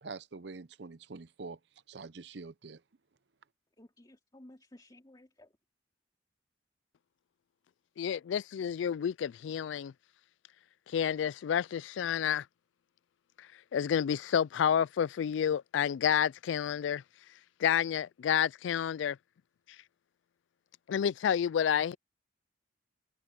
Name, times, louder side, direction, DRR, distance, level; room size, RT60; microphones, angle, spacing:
voice 1, 0.0-1.6 1.9-2.8, right 4 dB, 65° right, 0.7 m, -45 dB
voice 2, 3.8-5.6 8.0-8.2 21.0-21.3, left 1 dB, 20° left, 2.5 m, -56 dB
voice 3, 8.0-9.9 10.9-12.4 13.7-17.0 17.6-19.2 20.9-22.0, left 8 dB, 75° left, 0.3 m, -29 dB
head